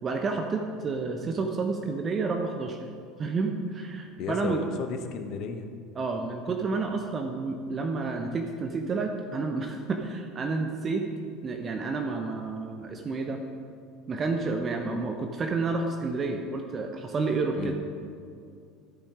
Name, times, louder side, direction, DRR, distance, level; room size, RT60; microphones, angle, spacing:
voice 1, 0.0-2.8 3.2-4.6 5.9-11.1 11.4-13.4 14.1-17.7, right 4 dB, 30° right, 4 dB, 1.0 m, -30 dB
voice 2, 4.2-5.7 17.5-17.7, left 5 dB, 50° left, 7 dB, 1.2 m, -34 dB
13.5 x 8.7 x 4.9 m, 2.3 s
figure-of-eight pair, 70°, 0 cm